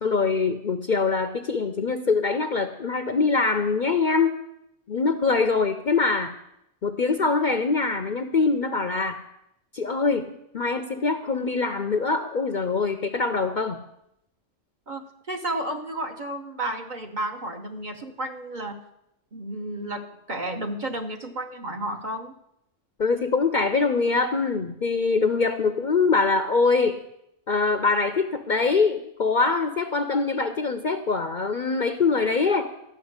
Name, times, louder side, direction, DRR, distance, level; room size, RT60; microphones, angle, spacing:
voice 1, 0.0-4.4 4.9-6.3 6.8-9.2 9.7-13.8 23.0-27.0 27.5-32.7, left 4 dB, 45° left, 8 dB, 0.7 m, -23 dB
voice 2, 14.9-18.8 19.3-20.0 20.3-22.3, right 1 dB, 40° right, 4 dB, 1.2 m, -32 dB
13.0 x 6.0 x 9.5 m, 0.81 s
omnidirectional pair, 1.3 m